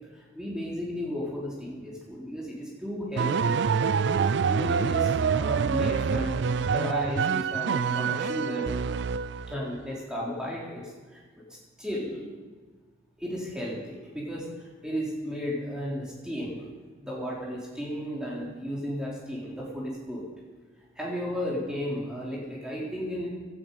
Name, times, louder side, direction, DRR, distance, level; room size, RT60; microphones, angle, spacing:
voice 1, 0.4-3.6 4.5-6.4 6.7-8.7 9.5-10.8 11.1-11.2 11.8-12.2 13.2-16.7 17.0-20.2 21.0-23.3, equal, 5° right, -5 dB, 3.5 m, -34 dB
sound 1, 3.2-9.6, right 6 dB, 60° right, 0.4 m, -26 dB
17.0 x 12.0 x 5.4 m, 1.3 s
head